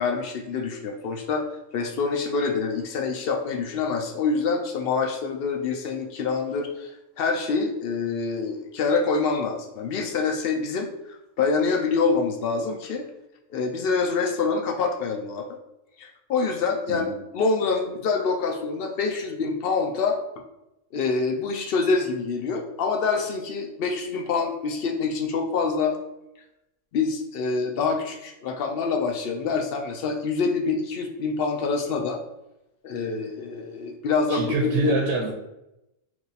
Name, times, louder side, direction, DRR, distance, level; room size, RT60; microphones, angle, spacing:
voice 1, 0.0-1.5 1.7-6.9 7.2-10.9 11.4-13.1 13.5-15.5 16.0-20.2 20.9-26.0 26.9-32.2 32.8-34.4 34.8-34.9, left 4 dB, 60° left, 2 dB, 0.6 m, -26 dB
voice 2, 34.3-35.3, right 3 dB, 65° right, 1 dB, 0.8 m, -25 dB
3.0 x 2.7 x 4.0 m, 0.90 s
omnidirectional pair, 1.3 m